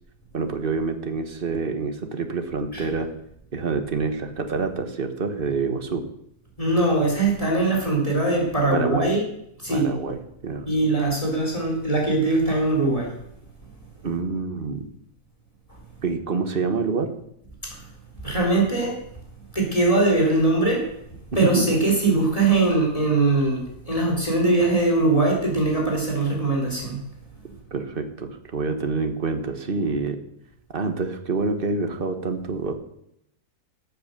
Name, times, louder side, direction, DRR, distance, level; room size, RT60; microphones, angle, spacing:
voice 1, 0.3-3.1 3.5-6.0 8.7-9.1 9.7-10.7 14.0-14.9 16.0-17.1 21.4-21.6 27.7-30.2 30.7-32.7, right 4 dB, 35° right, 7 dB, 1.5 m, -27 dB
voice 2, 6.6-9.2 9.6-9.9 10.6-13.1 17.7-17.8 18.2-19.0 19.5-20.9 21.3-27.0, right 2 dB, 20° left, -1 dB, 3.9 m, -21 dB
13.0 x 8.4 x 6.8 m, 0.77 s
omnidirectional pair, 1.7 m